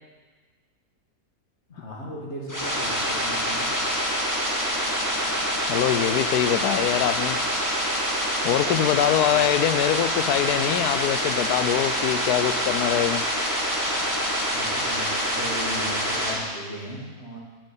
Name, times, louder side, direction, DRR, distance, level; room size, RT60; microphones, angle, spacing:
voice 1, 1.7-3.7 9.3-9.5 14.2-17.4, equal, 45° left, -2 dB, 2.1 m, -37 dB
sound 1, 2.5-16.3, equal, 10° left, 1.9 m, -26 dB
voice 2, 5.7-7.4 8.4-13.2, left 11 dB, 90° left, 12 dB, 1.1 m, -23 dB
10.0 x 6.4 x 7.3 m, 1.5 s
omnidirectional pair, 1.6 m